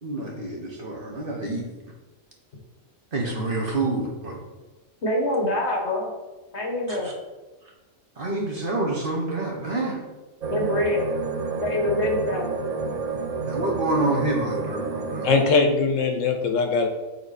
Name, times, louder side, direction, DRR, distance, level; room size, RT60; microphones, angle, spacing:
voice 1, 0.0-1.6 3.1-4.4 6.9-7.1 8.2-10.0 13.4-15.3, right 2 dB, 45° right, -1 dB, 1.3 m, -27 dB
voice 2, 5.0-6.1 6.5-7.1 10.5-11.0 11.6-12.5, left 1 dB, 55° left, 0 dB, 1.6 m, -25 dB
sound 1, 10.4-15.4, right 4 dB, 65° right, 0.4 m, -29 dB
voice 3, 15.2-16.9, left 4 dB, 75° left, 5 dB, 1.1 m, -21 dB
6.9 x 3.9 x 4.1 m, 1.2 s
omnidirectional pair, 1.4 m